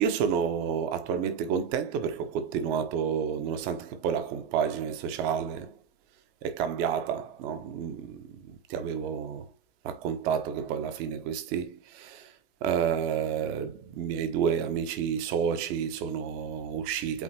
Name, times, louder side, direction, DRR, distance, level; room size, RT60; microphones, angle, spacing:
voice 1, 0.0-5.7 6.4-9.5 9.8-12.3 12.6-17.2, right 7 dB, 30° right, 1.3 m, -30 dB
8.4 x 3.9 x 2.9 m
figure-of-eight pair, 110°, 30 cm